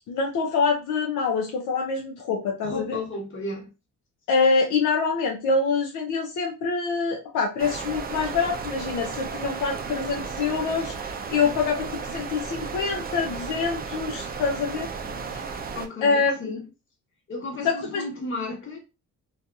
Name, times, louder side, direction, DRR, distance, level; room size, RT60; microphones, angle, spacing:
voice 1, 0.1-3.0 4.3-14.9 15.3-15.4 16.0-16.3 17.6-18.0, left 4 dB, 80° left, 0.7 m, -25 dB
voice 2, 2.6-3.7 15.7-16.6 17.3-18.8, left 2 dB, 40° left, 1.2 m, -33 dB
sound 1, 7.6-15.9, right 5 dB, 30° right, 0.4 m, -34 dB
2.7 x 2.4 x 2.3 m
cardioid pair, 90°, 30 cm